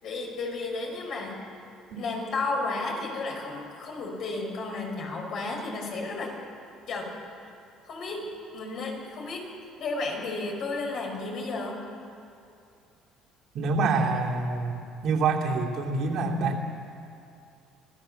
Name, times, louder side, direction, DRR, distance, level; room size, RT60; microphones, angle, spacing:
voice 1, 0.0-1.4 1.9-6.3 6.9-7.1 7.8-9.5 9.8-11.8, left 3 dB, 60° left, 0 dB, 5.6 m, -33 dB
voice 2, 13.5-14.7 15.0-16.8, right 3 dB, 65° right, -1 dB, 2.9 m, -26 dB
25.5 x 15.0 x 7.2 m, 2.6 s
cardioid pair, 100°, 0 cm